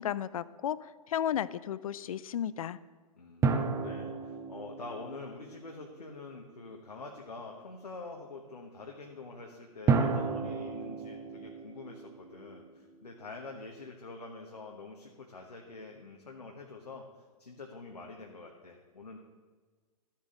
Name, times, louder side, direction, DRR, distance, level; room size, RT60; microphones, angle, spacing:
voice 1, 0.0-2.8, left 10 dB, 60° left, 17 dB, 0.4 m, -34 dB
voice 2, 3.2-17.1 17.4-19.2, left 3 dB, 85° left, 0 dB, 1.2 m, -46 dB
sound 1, 3.4-6.3 9.9-13.2, right 5 dB, 15° right, 0.6 m, -33 dB
13.0 x 7.2 x 3.8 m, 1.4 s
figure-of-eight pair, 110°, 20 cm